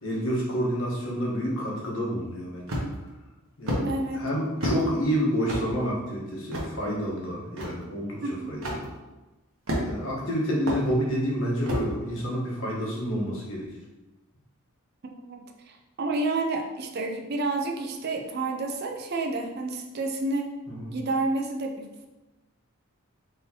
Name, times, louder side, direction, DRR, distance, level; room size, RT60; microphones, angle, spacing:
voice 1, 0.0-2.7 3.6-8.9 9.8-13.7 20.7-20.9, equal, 65° left, -3 dB, 1.2 m, -29 dB
sound 1, 2.7-3.1 3.7-3.8 4.6-4.8 5.5-5.7 6.5-6.7 7.6-7.7 8.6-8.8 9.7-10.1 10.7-10.8 11.7-11.9, equal, 70° right, 1.1 m, -28 dB
voice 2, 3.8-4.2 8.2-8.5 15.3-15.4 15.7-20.5 20.9-22.1, right 2 dB, 45° right, 3 dB, 0.5 m, -29 dB
4.2 x 3.7 x 2.8 m, 1.1 s
head